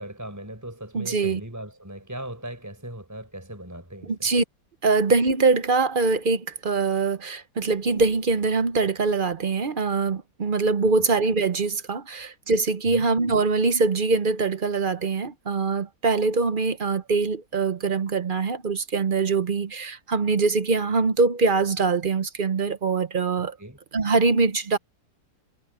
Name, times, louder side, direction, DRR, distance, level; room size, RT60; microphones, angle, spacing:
voice 1, 0.0-4.3 12.8-13.1 23.6-23.8, right 1 dB, 10° right, 4.9 m, -38 dB
voice 2, 0.9-1.4 4.0-4.4 4.8-23.6 23.9-24.8, right 4 dB, 45° right, 0.7 m, -23 dB
omnidirectional pair, 1.8 m